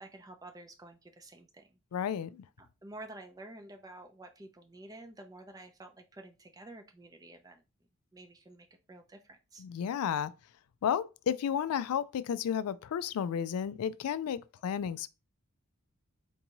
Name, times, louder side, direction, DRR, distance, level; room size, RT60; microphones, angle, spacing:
voice 1, 0.0-1.8 2.6-7.6 8.1-9.6, right 2 dB, 15° right, 0.4 m, -50 dB
voice 2, 1.9-2.3 9.6-10.3 10.8-15.1, left 8 dB, 85° left, 0.3 m, -32 dB
4.5 x 2.6 x 2.9 m
head